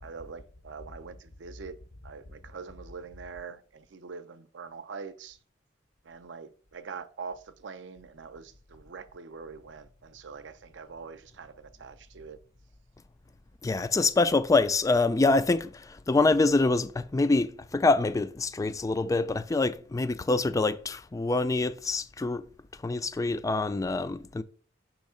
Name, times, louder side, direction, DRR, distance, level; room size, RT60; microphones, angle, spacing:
voice 1, 0.0-1.8 2.0-5.4 6.0-12.4, right 5 dB, 75° right, 0.6 m, -43 dB
voice 2, 13.6-22.4 22.8-24.4, left 3 dB, 20° left, 0.3 m, -25 dB
6.3 x 3.1 x 5.0 m
head